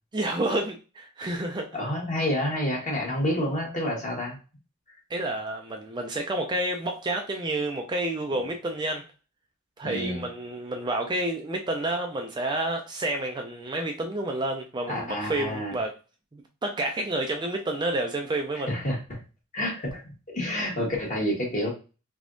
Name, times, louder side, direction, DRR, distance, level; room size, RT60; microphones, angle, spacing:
voice 1, 0.1-1.7 5.1-9.1 9.8-15.9 16.3-18.7, right 1 dB, 20° right, 0.4 m, -29 dB
voice 2, 1.7-4.4 8.3-8.4 9.8-10.3 14.9-15.8 18.7-19.2 19.5-21.7, left 1 dB, 35° left, 1.3 m, -29 dB
3.4 x 3.4 x 2.6 m
head